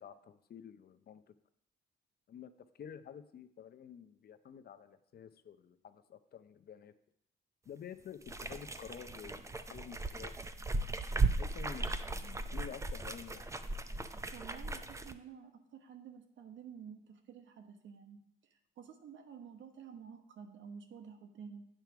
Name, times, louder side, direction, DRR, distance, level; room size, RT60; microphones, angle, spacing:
voice 1, 0.0-1.3 2.3-6.9 7.7-10.3 11.2-11.9 12.1-13.5, left 8 dB, 50° left, 12 dB, 0.6 m, -50 dB
sound 1, 8.2-15.1, right 3 dB, 15° right, 0.5 m, -37 dB
voice 2, 14.3-18.2 18.8-21.7, right 7 dB, 70° right, 7 dB, 1.1 m, -51 dB
9.0 x 4.6 x 5.9 m, 0.75 s
cardioid pair, 90°, 20 cm